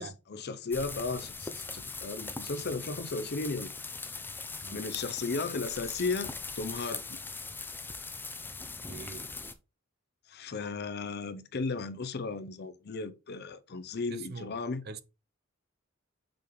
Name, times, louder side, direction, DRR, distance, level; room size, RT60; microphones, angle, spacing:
voice 1, 0.0-3.7 4.7-7.2 10.3-14.8, left 3 dB, 50° left, 0.6 m, -35 dB
sound 1, 0.7-9.5, left 3 dB, 10° left, 0.5 m, -40 dB
voice 2, 8.6-9.3 14.1-15.0, right 4 dB, 50° right, 0.6 m, -44 dB
6.9 x 5.2 x 3.1 m
head